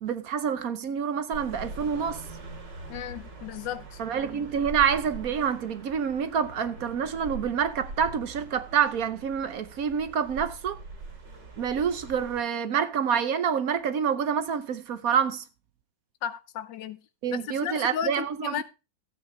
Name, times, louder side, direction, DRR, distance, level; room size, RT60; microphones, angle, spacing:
voice 1, 0.0-2.2 4.0-10.8 11.6-15.4 17.2-18.6, right 7 dB, 60° right, 1.1 m, -27 dB
sound 1, 1.3-12.4, right 3 dB, 85° right, 3.2 m, -42 dB
voice 2, 2.9-4.0 16.2-17.0 17.3-18.6, left 9 dB, 85° left, 1.5 m, -34 dB
14.0 x 8.4 x 3.2 m
omnidirectional pair, 1.9 m